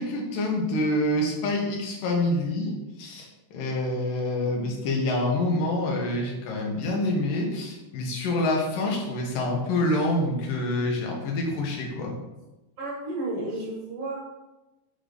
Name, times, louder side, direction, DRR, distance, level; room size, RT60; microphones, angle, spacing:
voice 1, 0.0-2.7 3.0-12.1, left 1 dB, 85° left, 0 dB, 3.1 m, -27 dB
voice 2, 12.8-14.2, right 2 dB, 45° right, -3 dB, 2.5 m, -32 dB
8.7 x 3.8 x 5.2 m, 1.0 s
omnidirectional pair, 3.8 m